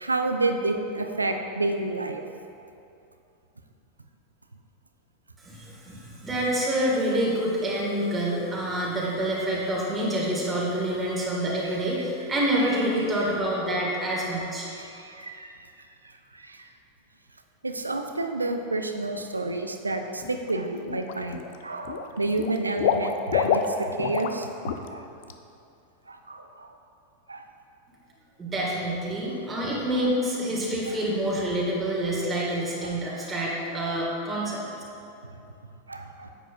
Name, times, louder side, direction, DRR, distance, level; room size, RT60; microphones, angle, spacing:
voice 1, 0.0-2.2 14.7-15.7 16.3-16.7 17.6-24.5 24.9-25.0 26.1-26.8 27.3-27.4 32.8-32.9 33.2-33.3 35.2-35.3 35.9-36.3, right 2 dB, 80° right, 5 dB, 0.5 m, -30 dB
voice 2, 5.4-14.7 28.4-34.6, right 1 dB, 15° right, -5 dB, 1.9 m, -27 dB
Water / Liquid, 20.2-20.5 20.9-21.6 21.8-24.4 24.6-24.9 25.2-25.3, left 7 dB, 50° left, 0.4 m, -27 dB
9.8 x 8.2 x 2.5 m, 2.7 s
figure-of-eight pair, 90°, 0 cm